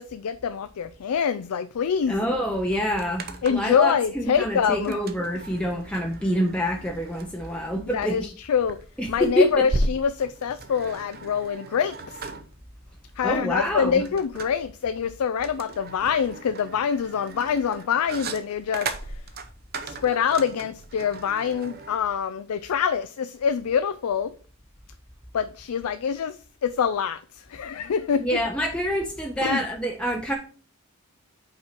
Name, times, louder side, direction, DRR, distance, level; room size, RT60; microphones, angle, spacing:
voice 1, 0.0-2.2 3.4-5.0 7.9-8.8 9.1-12.2 13.2-19.2 19.8-24.3 25.3-28.4 29.4-29.6, left 7 dB, 85° left, 0.4 m, -25 dB
voice 2, 2.1-8.3 9.0-9.5 13.2-14.0 28.2-30.3, equal, 5° left, 0.6 m, -26 dB
sound 1, 2.5-3.8 4.8-22.0, right 2 dB, 45° right, 0.7 m, -36 dB
5.6 x 4.5 x 5.0 m
head